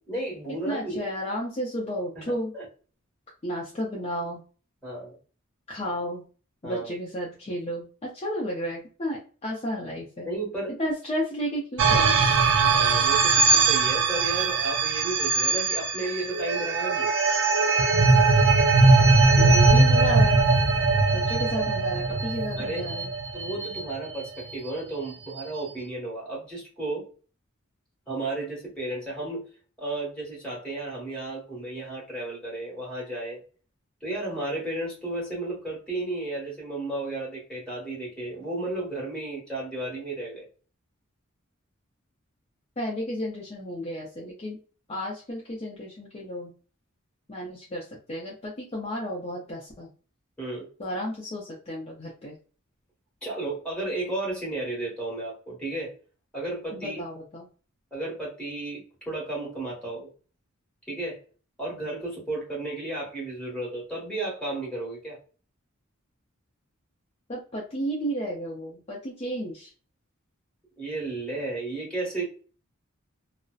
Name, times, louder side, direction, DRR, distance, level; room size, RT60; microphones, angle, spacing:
voice 1, 0.1-1.0 2.2-2.3 2.5-2.6 4.8-5.1 6.6-6.9 10.2-10.7 12.7-17.1 22.6-22.9 23.3-27.1 28.1-29.5 29.8-33.4 34.0-40.5 50.4-50.7 53.2-55.9 56.3-57.0 57.9-60.1 60.9-61.2 61.6-65.2 70.8-72.2, right 2 dB, 5° left, -5 dB, 1.2 m, -33 dB
voice 2, 0.7-2.5 3.4-4.4 5.7-6.2 6.6-10.3 10.7-12.3 19.3-20.4 21.1-23.1 42.8-44.6 44.9-46.5 47.3-49.9 50.8-52.4 56.7-57.5 67.3-69.7, equal, 30° left, -3 dB, 0.5 m, -32 dB
sound 1, 11.8-24.2, right 3 dB, 60° right, 0.5 m, -21 dB
2.6 x 2.0 x 2.3 m, 0.38 s
head